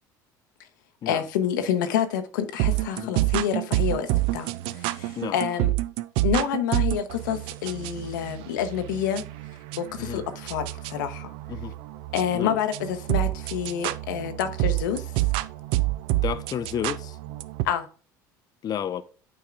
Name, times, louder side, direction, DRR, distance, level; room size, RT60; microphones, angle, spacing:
voice 1, 1.1-5.7 6.2-9.2 9.8-11.3 12.1-15.1 17.6-17.9, left 9 dB, 85° left, 0.8 m, -28 dB
sound 1, 2.6-17.6, right 18 dB, 65° right, 0.4 m, -28 dB
voice 2, 16.2-17.2 18.6-19.0, left 9 dB, 40° left, 0.5 m, -31 dB
8.6 x 4.7 x 2.4 m
hypercardioid pair, 75°, 10 cm